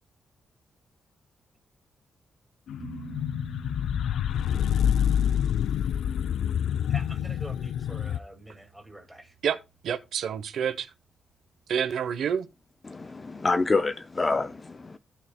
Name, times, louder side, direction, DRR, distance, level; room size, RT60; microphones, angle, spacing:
sound 1, 2.7-8.2, left 9 dB, 90° left, 0.4 m, -27 dB
sound 2, 2.8-10.4 13.4-13.5, right 7 dB, 35° right, 1.9 m, -49 dB
voice 1, 6.9-9.4, right 1 dB, 5° right, 2.0 m, -44 dB
voice 2, 9.8-10.9 11.7-12.5, right 8 dB, 75° right, 0.8 m, -28 dB
voice 3, 12.8-15.0, left 3 dB, 25° left, 0.4 m, -27 dB
17.0 x 5.7 x 2.2 m
wide cardioid pair, 155°, 0 cm